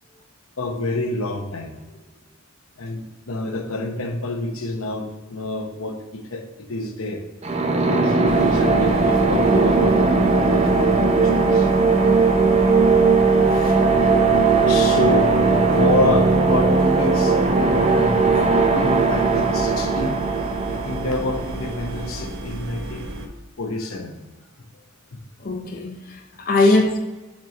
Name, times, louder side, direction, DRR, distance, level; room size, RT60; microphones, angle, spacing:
voice 1, 0.6-1.8 2.8-7.2 7.7-11.7 14.7-20.2 20.7-23.1 23.6-24.2 25.1-25.2 26.6-26.8, left 2 dB, 90° left, 0.9 m, -28 dB
sound 1, 7.4-22.1, right 4 dB, 30° right, 0.6 m, -18 dB
sound 2, 8.3-23.3, right 2 dB, 70° right, 0.8 m, -32 dB
voice 2, 13.4-13.9 25.4-27.0, left 2 dB, 45° left, 0.6 m, -21 dB
6.1 x 4.3 x 5.3 m
head